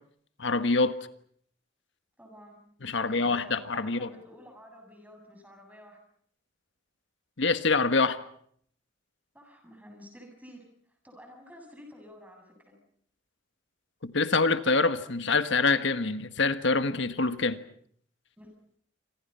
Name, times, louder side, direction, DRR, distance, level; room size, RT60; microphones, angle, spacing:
voice 1, 0.4-0.9 2.8-4.1 7.4-8.2 14.0-17.6, left 3 dB, 65° left, 1.5 m, -25 dB
voice 2, 2.2-2.7 3.0-6.0 9.3-10.7 11.0-12.8 18.4-18.5, equal, 10° right, 7.6 m, -50 dB
28.0 x 26.5 x 5.7 m
head